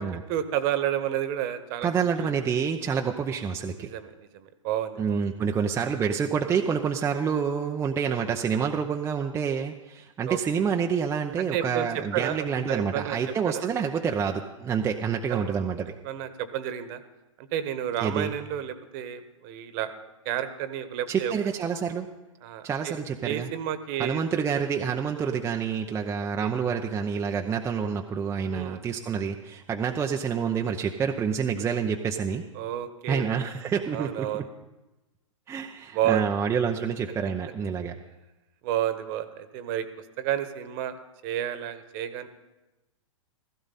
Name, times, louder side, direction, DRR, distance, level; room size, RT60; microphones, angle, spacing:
voice 1, 0.3-2.1 3.8-5.2 8.1-8.4 10.3-10.6 11.5-13.2 13.5-13.6 15.3-15.8 16.0-17.0 17.4-19.9 20.2-21.3 22.4-23.0 23.2-24.2 25.2-25.3 26.4-26.5 28.5-28.8 32.5-33.4 33.9-34.5 35.9-36.2 38.6-39.9 40.2-40.9 41.2-42.3, right 11 dB, 40° right, 11 dB, 1.4 m, -31 dB
voice 2, 1.8-3.9 5.0-15.9 18.0-18.3 21.1-22.1 22.6-23.5 24.0-32.4 33.1-34.4 35.5-38.0, right 6 dB, 15° right, 2 dB, 0.7 m, -28 dB
16.0 x 15.0 x 4.2 m, 1.1 s
hypercardioid pair, 120°, 17 cm